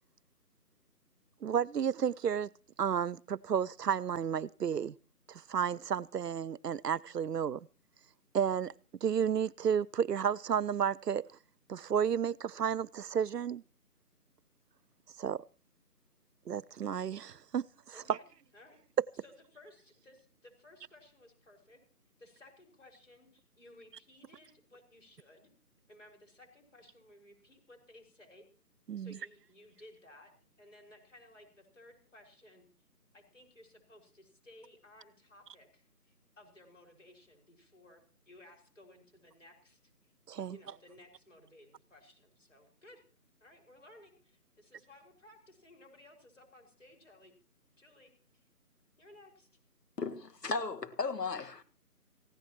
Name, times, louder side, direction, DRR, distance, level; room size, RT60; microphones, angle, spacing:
voice 1, 1.4-2.5 2.8-4.9 5.3-7.6 8.3-8.7 9.0-11.3 11.7-13.6 15.2-15.4 16.5-17.7 18.1-18.2 28.9-29.2 40.3-40.6, right 8 dB, 85° right, 0.7 m, -32 dB
voice 2, 17.9-18.2 18.5-18.8 19.1-21.8 22.2-25.5 25.9-28.4 29.0-30.3 30.6-32.7 33.1-40.1 40.5-43.0 43.4-47.3 47.8-48.5 49.0-49.5, left 1 dB, 50° left, 5.7 m, -58 dB
voice 3, 50.0-51.6, left 4 dB, 85° left, 1.9 m, -35 dB
20.0 x 16.0 x 3.0 m
figure-of-eight pair, 180°, 47 cm